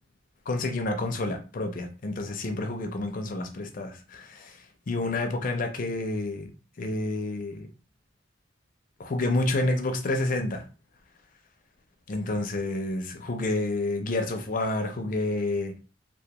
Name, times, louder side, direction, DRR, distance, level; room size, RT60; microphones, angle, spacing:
voice 1, 0.5-4.6 4.9-6.5 6.8-7.7 9.0-10.7 12.1-15.8, left 2 dB, 45° left, 0.4 m, -29 dB
2.2 x 2.2 x 2.9 m
head